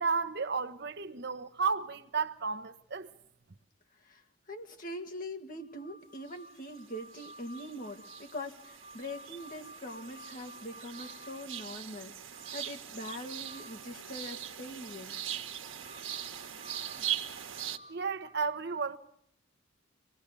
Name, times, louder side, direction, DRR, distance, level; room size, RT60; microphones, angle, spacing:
voice 1, 0.0-3.1 17.9-19.0, right 5 dB, 55° right, 1.0 m, -33 dB
voice 2, 4.0-15.2, left 1 dB, 45° left, 2.2 m, -43 dB
sound 1, 5.6-14.0 14.8-18.4, equal, 65° left, 3.9 m, -54 dB
sound 2, 6.3-6.8 7.1-17.8, right 10 dB, 75° right, 1.5 m, -41 dB
26.0 x 20.0 x 6.8 m
head